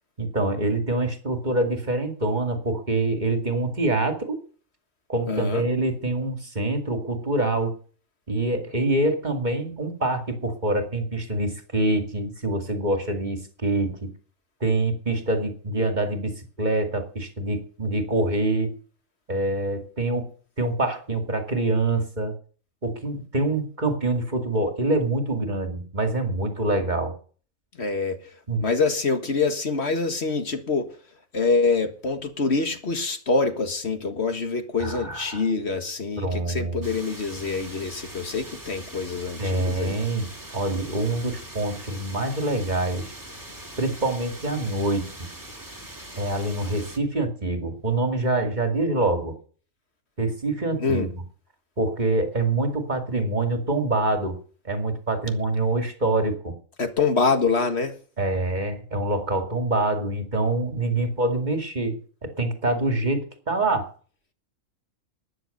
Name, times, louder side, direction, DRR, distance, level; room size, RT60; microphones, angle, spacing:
voice 1, 0.2-4.4 5.1-7.7 8.3-14.0 14.6-18.7 19.3-20.3 20.6-22.3 22.8-27.1 28.5-28.6 34.8-35.4 36.2-36.9 39.4-40.3 40.5-43.1 43.8-45.1 46.2-49.4 50.2-51.1 51.8-54.4 54.6-56.5 58.2-62.0 62.2-63.9, right 2 dB, 30° right, 2.3 m, -25 dB
voice 2, 5.3-5.6 27.8-28.2 28.6-30.9 31.3-40.0 50.8-51.1 56.8-57.9, left 4 dB, 50° left, 1.9 m, -25 dB
sound 1, 36.8-47.0, right 1 dB, 15° right, 2.1 m, -42 dB
12.5 x 10.0 x 6.7 m
omnidirectional pair, 1.5 m